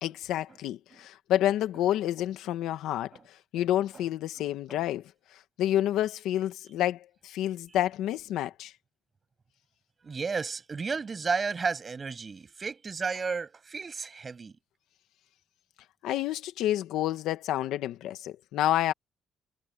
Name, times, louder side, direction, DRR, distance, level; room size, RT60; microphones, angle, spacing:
voice 1, 0.0-3.1 3.5-5.1 5.6-8.7 16.0-18.9, left 12 dB, 90° left, 1.6 m, -29 dB
voice 2, 10.0-14.5, right 5 dB, 35° right, 7.7 m, -33 dB
cardioid pair, 90°, 0 cm